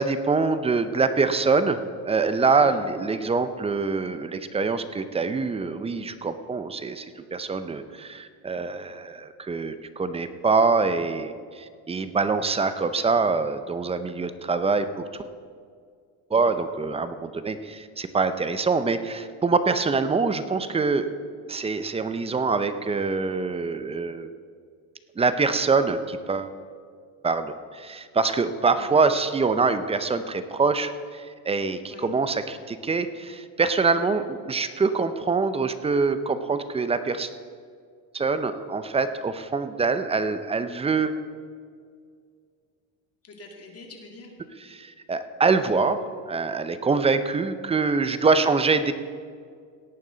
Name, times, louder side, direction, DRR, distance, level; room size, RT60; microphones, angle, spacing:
voice 1, 0.0-1.8 2.1-15.1 16.3-21.1 21.5-24.3 25.2-26.5 27.2-37.3 38.1-41.2 44.7-46.0 46.3-48.9, right 4 dB, 15° right, 11 dB, 0.5 m, -24 dB
voice 2, 43.2-44.3 46.8-47.0, left 4 dB, 35° left, 1 dB, 2.3 m, -44 dB
17.5 x 9.0 x 3.9 m, 2.1 s
cardioid pair, 125°, 39 cm